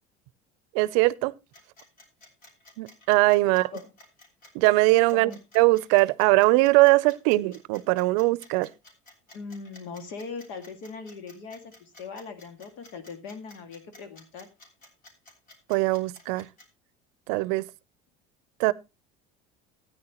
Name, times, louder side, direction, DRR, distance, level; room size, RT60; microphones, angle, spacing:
voice 1, 0.7-1.3 2.8-3.7 4.5-8.7 15.7-16.5 17.3-17.7 18.6-18.7, right 21 dB, 80° right, 0.5 m, -21 dB
sound 1, 1.5-16.6, left 2 dB, 45° left, 3.4 m, -52 dB
voice 2, 3.4-3.9 5.1-5.4 9.3-14.5, left 5 dB, 75° left, 2.1 m, -40 dB
13.5 x 9.3 x 2.9 m
supercardioid pair, 115°, 21 cm